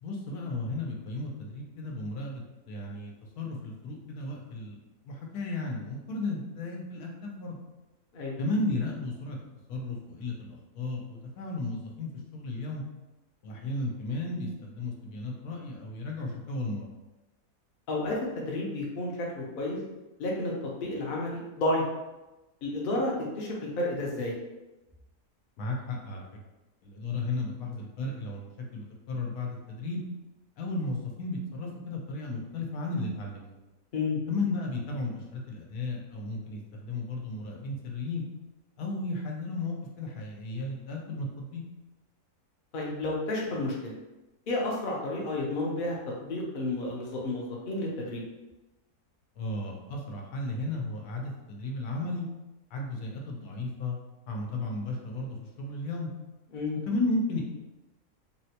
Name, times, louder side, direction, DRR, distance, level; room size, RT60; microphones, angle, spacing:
voice 1, 0.0-4.8 5.1-7.6 8.4-9.4 9.7-12.8 13.4-16.9 25.6-26.2 26.8-30.0 30.6-33.5 34.3-38.2 38.8-41.7 49.4-52.3 52.7-54.0 54.3-56.1 56.8-57.4, left 2 dB, 85° left, 0 dB, 1.2 m, -34 dB
voice 2, 17.9-19.8 20.2-21.8 22.6-24.3 33.9-34.2 42.7-43.9 44.5-45.9 46.2-48.2 56.5-56.8, left 2 dB, 50° left, -3 dB, 0.6 m, -31 dB
3.9 x 2.1 x 2.8 m, 1.0 s
omnidirectional pair, 1.6 m